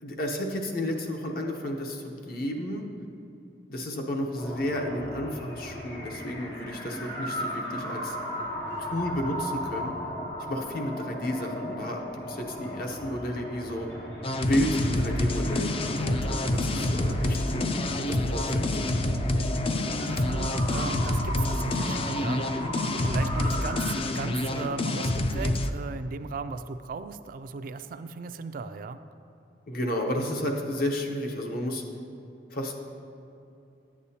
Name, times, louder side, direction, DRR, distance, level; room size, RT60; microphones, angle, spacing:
voice 1, 0.0-2.9 3.7-8.2 8.8-9.9 10.4-13.9 14.4-17.7 18.1-18.9 29.7-31.8 32.5-32.7, left 1 dB, 55° left, 2 dB, 0.9 m, -32 dB
sound 1, 4.3-23.9, equal, 75° left, 1.9 m, -37 dB
sound 2, 14.2-25.7, left 1 dB, 30° left, 0.3 m, -27 dB
voice 2, 20.1-22.5 23.0-29.0, right 4 dB, 50° right, 10 dB, 0.3 m, -37 dB
11.0 x 8.4 x 2.8 m, 2.7 s
head